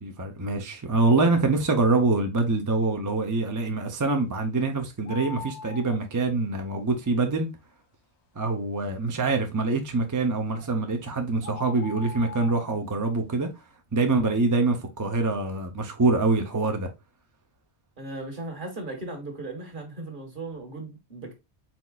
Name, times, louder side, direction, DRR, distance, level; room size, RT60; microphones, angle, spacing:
voice 1, 0.0-7.5 8.4-13.5 13.9-16.9, right 3 dB, 25° right, 0.4 m, -25 dB
sound 1, 5.1-6.0 10.6-10.7 11.4-12.7, left 6 dB, 75° left, 1.0 m, -40 dB
voice 2, 18.0-21.3, right 2 dB, 50° right, 1.5 m, -37 dB
4.4 x 4.0 x 2.3 m
omnidirectional pair, 1.1 m